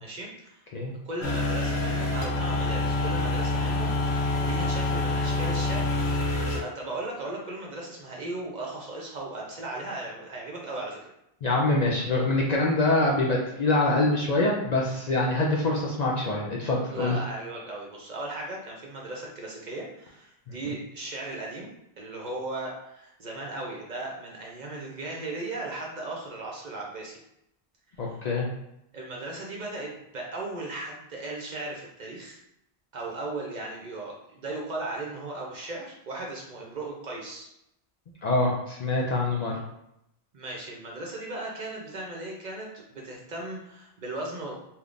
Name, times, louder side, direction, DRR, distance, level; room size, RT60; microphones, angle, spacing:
voice 1, 0.0-0.6 1.0-6.0 6.4-11.0 16.9-21.7 22.0-27.2 27.9-28.2 28.9-32.4 32.9-37.5 40.3-44.6, right 2 dB, 50° right, -2 dB, 0.7 m, -37 dB
sound 1, 1.2-6.6, left 2 dB, 80° left, 0.9 m, -26 dB
voice 2, 11.4-17.2 20.6-20.7 28.0-28.5 38.2-39.6, left 2 dB, 50° left, -3 dB, 0.5 m, -25 dB
3.5 x 2.8 x 2.5 m, 0.81 s
omnidirectional pair, 1.1 m